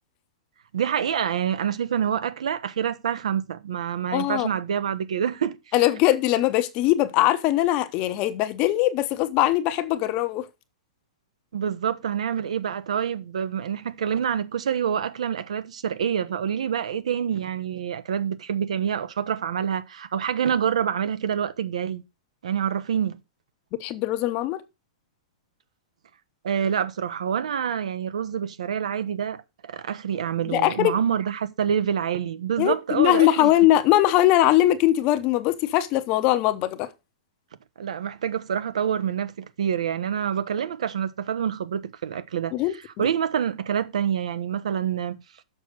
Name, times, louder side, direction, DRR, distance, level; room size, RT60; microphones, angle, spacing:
voice 1, 0.7-5.6 11.5-22.0 22.4-23.2 26.4-33.5 37.8-42.5 43.0-45.2, right 8 dB, 85° right, 1.0 m, -27 dB
voice 2, 4.1-4.5 5.7-10.5 23.8-24.6 30.5-30.9 32.6-36.9 42.5-42.7, left 14 dB, 30° left, 0.8 m, -21 dB
6.7 x 5.8 x 6.4 m
hypercardioid pair, 165°, 3 cm